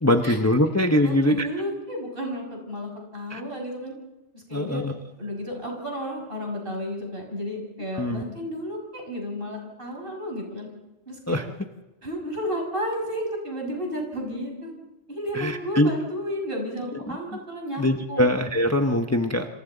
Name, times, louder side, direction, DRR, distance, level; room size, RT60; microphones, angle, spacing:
voice 1, 0.0-1.5 3.3-3.4 4.5-4.9 8.0-8.2 11.3-11.5 15.3-15.9 17.1-17.2 17.8-19.5, left 1 dB, 15° left, 5 dB, 1.0 m, -22 dB
voice 2, 1.0-3.9 4.3-4.8 5.2-10.7 11.1-11.4 12.0-14.7 15.1-18.3, equal, 50° right, 1 dB, 6.5 m, -32 dB
27.0 x 26.5 x 4.0 m, 1.0 s
omnidirectional pair, 1.2 m